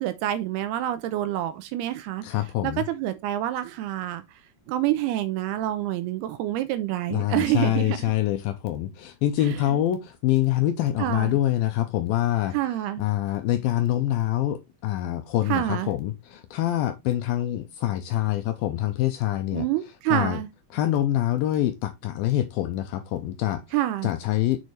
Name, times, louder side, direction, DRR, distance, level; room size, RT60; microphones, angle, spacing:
voice 1, 0.0-2.3 2.6-4.2 4.7-8.1 9.4-9.8 11.0-11.4 12.5-13.0 15.5-15.9 19.5-20.5 23.7-24.1, right 13 dB, 80° right, 2.6 m, -27 dB
voice 2, 2.2-2.8 7.1-12.6 13.0-19.7 20.1-20.4 20.7-23.6 24.0-24.6, left 13 dB, 80° left, 2.2 m, -25 dB
7.1 x 6.5 x 3.2 m
omnidirectional pair, 4.7 m